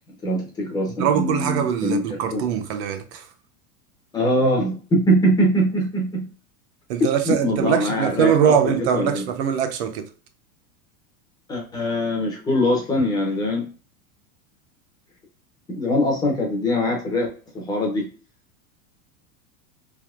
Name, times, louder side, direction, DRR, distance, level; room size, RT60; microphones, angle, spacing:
voice 1, 0.2-2.0 2.3-2.4 4.1-6.3 7.2-9.2 11.5-13.7 15.7-17.3 17.5-18.1, equal, 10° left, 0.5 m, -22 dB
voice 2, 0.9-3.3 6.9-10.1, right 8 dB, 50° right, 0.6 m, -22 dB
3.5 x 2.7 x 2.2 m
supercardioid pair, 165°, 44 cm